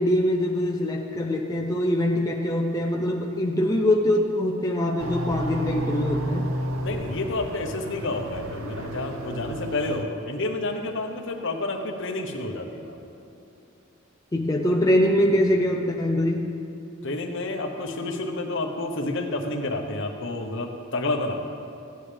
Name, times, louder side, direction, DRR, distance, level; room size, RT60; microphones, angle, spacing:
voice 1, 0.0-6.5 14.3-16.5, left 1 dB, 15° left, 0 dB, 0.5 m, -23 dB
sound 1, 5.0-10.0, right 1 dB, 85° right, 0.7 m, -32 dB
voice 2, 6.8-13.0 17.0-21.4, left 2 dB, 60° left, 3 dB, 1.0 m, -29 dB
15.0 x 9.3 x 3.4 m, 2.6 s
head